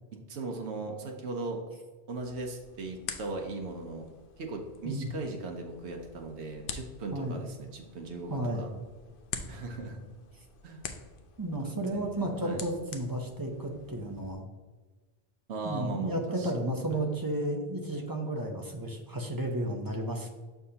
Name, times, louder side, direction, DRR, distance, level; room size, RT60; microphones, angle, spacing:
voice 1, 0.1-1.6 2.1-4.1 4.4-8.7 9.5-10.0 10.6-10.8 11.6-12.6 15.5-16.5 16.9-17.1, right 3 dB, 85° right, 2 dB, 1.1 m, -38 dB
sound 1, 2.2-14.3, left 6 dB, 60° left, 0.7 m, -46 dB
voice 2, 8.3-8.7 11.4-14.5 15.6-20.3, right 1 dB, 25° right, 2 dB, 0.7 m, -33 dB
6.7 x 5.8 x 2.8 m, 1.3 s
omnidirectional pair, 1.1 m